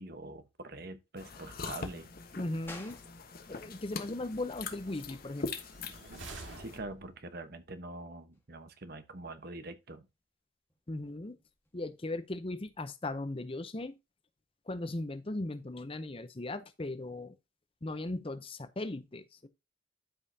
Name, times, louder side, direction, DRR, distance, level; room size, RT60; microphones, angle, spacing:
voice 1, 0.0-2.1 5.8-5.9 6.6-10.1, right 2 dB, 50° right, 1.1 m, -44 dB
sound 1, 1.2-6.8, left 4 dB, 45° left, 1.2 m, -43 dB
voice 2, 2.4-3.0 3.5-5.5 10.9-11.4 11.7-13.9 14.7-17.4 17.8-19.5, left 2 dB, 30° left, 0.7 m, -38 dB
sound 2, 2.7-12.9, left 2 dB, 10° left, 1.5 m, -58 dB
sound 3, 5.6-7.4, right 2 dB, 75° right, 2.2 m, -47 dB
12.5 x 5.5 x 2.8 m
head